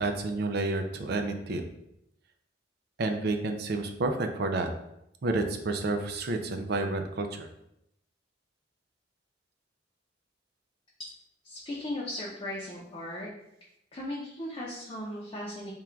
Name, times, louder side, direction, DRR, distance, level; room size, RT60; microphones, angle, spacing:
voice 1, 0.0-1.6 3.0-4.7 5.2-7.5, right 2 dB, 55° right, 5 dB, 0.5 m, -30 dB
voice 2, 11.4-13.3 13.9-15.7, left 1 dB, 25° left, -6 dB, 0.6 m, -37 dB
3.7 x 2.3 x 4.4 m, 0.80 s
head